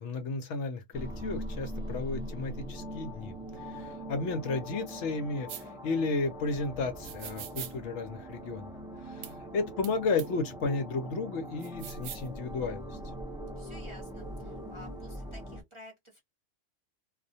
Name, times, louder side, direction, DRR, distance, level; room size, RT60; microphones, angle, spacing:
voice 1, 0.0-8.7 9.0-13.0, left 3 dB, 70° left, 0.8 m, -33 dB
sound 1, 0.9-15.6, equal, 5° right, 0.3 m, -41 dB
sound 2, 5.5-5.6 7.0-7.7 9.2-9.3 9.8-9.9 10.2-10.3 11.6-12.3, right 10 dB, 75° right, 0.9 m, -41 dB
voice 2, 9.0-9.3 13.6-16.2, equal, 30° right, 0.7 m, -52 dB
2.3 x 2.1 x 2.6 m
omnidirectional pair, 1.3 m